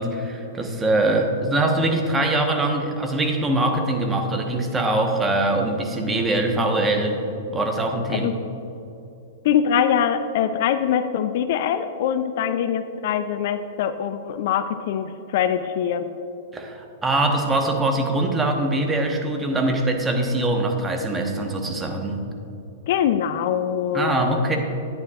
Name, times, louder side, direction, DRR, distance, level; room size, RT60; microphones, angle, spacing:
voice 1, 0.0-7.2 7.5-8.3 16.5-22.2 23.9-24.6, right 2 dB, 15° right, 3 dB, 1.1 m, -23 dB
voice 2, 9.4-16.1 22.9-24.2, left 9 dB, 60° left, 10 dB, 0.4 m, -23 dB
11.0 x 9.2 x 2.4 m, 2.8 s
hypercardioid pair, 110°, 0 cm